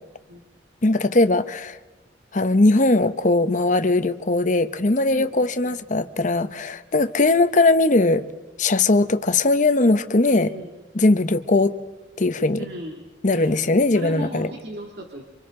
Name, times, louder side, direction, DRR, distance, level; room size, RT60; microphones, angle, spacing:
voice 1, 0.8-1.8 2.3-8.2 8.6-10.5 10.9-11.8 12.2-12.6 13.2-14.5, left 2 dB, 45° left, 11 dB, 0.9 m, -19 dB
voice 2, 5.6-6.0 10.1-10.7 12.6-13.7 13.9-15.2, right 1 dB, 60° right, 1 dB, 2.4 m, -37 dB
28.0 x 26.0 x 3.8 m, 1.1 s
head